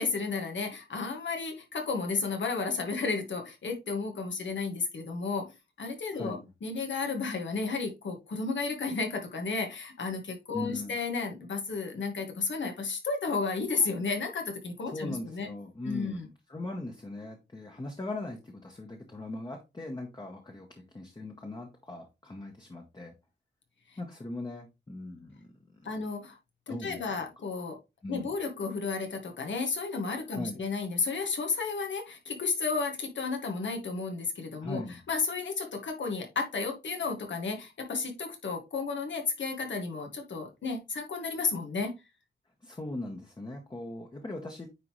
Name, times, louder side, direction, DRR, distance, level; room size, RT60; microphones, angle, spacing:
voice 1, 0.0-5.4 5.8-15.5 15.8-16.3 25.8-26.4 26.7-27.8 28.1-34.8 35.1-42.0, left 4 dB, 85° left, 3 dB, 1.7 m, -32 dB
voice 2, 6.1-6.5 10.5-11.0 14.9-16.2 16.5-23.1 24.0-25.9 26.7-27.0 28.0-28.3 30.3-30.6 34.6-35.0 42.6-44.7, left 2 dB, 25° left, 2 dB, 1.0 m, -40 dB
9.3 x 3.8 x 3.1 m, 0.25 s
wide cardioid pair, 130°, 19 cm